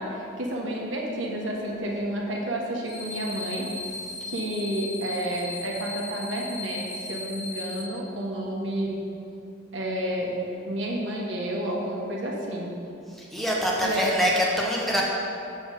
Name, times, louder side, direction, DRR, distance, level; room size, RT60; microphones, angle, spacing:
voice 1, 0.0-3.7 4.3-9.0 9.7-10.3 10.6-12.7 13.8-14.1, right 1 dB, 75° right, -2 dB, 1.3 m, -30 dB
sound 1, 2.8-7.8, left 2 dB, 40° left, 1.9 m, -37 dB
voice 2, 13.1-15.0, equal, ahead, -3 dB, 0.8 m, -24 dB
6.9 x 4.3 x 6.6 m, 2.6 s
head